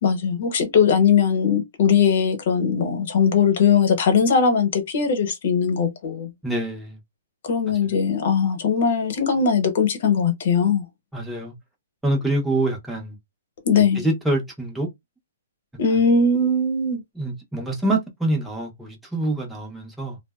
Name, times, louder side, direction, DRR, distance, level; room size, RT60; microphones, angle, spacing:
voice 1, 0.0-6.3 7.4-10.8 13.6-14.1 15.8-17.0, left 6 dB, 55° left, 1.0 m, -20 dB
voice 2, 6.4-7.0 7.8-7.9 11.1-11.5 12.0-13.2 13.7-14.9 17.2-20.2, right 2 dB, 5° right, 0.7 m, -25 dB
2.6 x 2.0 x 2.3 m
hypercardioid pair, 155°, 0 cm